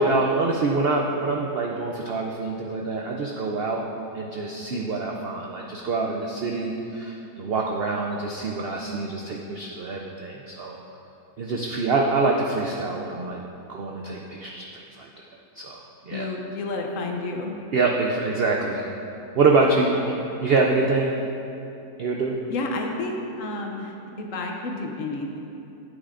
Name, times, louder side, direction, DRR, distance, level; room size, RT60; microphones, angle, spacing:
voice 1, 0.0-3.8 4.1-10.8 11.4-13.4 13.7-15.1 15.6-16.3 17.7-18.9 19.3-20.1 20.4-21.2 22.0-22.3, right 3 dB, 80° right, 0 dB, 0.5 m, -25 dB
voice 2, 16.1-17.6 19.7-19.8 22.5-25.5, left 2 dB, 65° left, 2 dB, 1.0 m, -31 dB
10.0 x 8.2 x 2.5 m, 2.8 s
omnidirectional pair, 1.7 m